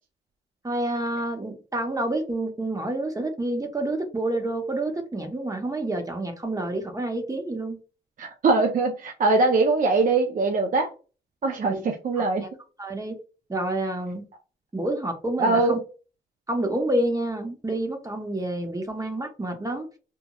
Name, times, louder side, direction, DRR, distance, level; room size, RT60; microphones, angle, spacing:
voice 1, 0.6-7.8 11.6-11.8 12.2-12.5 12.8-13.2 13.5-14.2 14.7-15.8 16.5-19.9, right 1 dB, 20° right, 0.7 m, -28 dB
voice 2, 8.2-10.9 11.4-12.4 15.4-15.8, right 3 dB, 45° right, 0.5 m, -22 dB
2.9 x 2.2 x 2.2 m
supercardioid pair, 50°, 19 cm